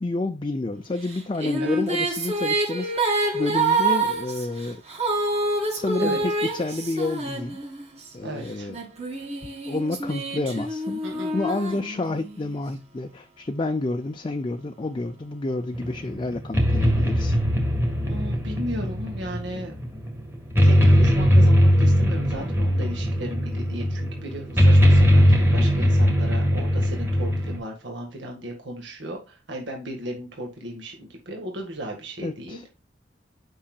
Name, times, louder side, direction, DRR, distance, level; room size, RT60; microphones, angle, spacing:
voice 1, 0.0-2.9 3.3-4.8 5.7-7.6 8.1-8.8 9.7-17.4 32.2-32.6, left 2 dB, 25° left, 0.5 m, -29 dB
Female singing, 1.1-8.0 8.7-12.4, right 2 dB, 35° right, 2.1 m, -27 dB
voice 2, 8.2-8.7 11.0-11.3 18.0-19.7 20.6-32.7, right 1 dB, 75° right, 1.8 m, -35 dB
sound 1, 15.7-27.6, equal, 10° right, 1.7 m, -20 dB
8.6 x 5.5 x 2.4 m
head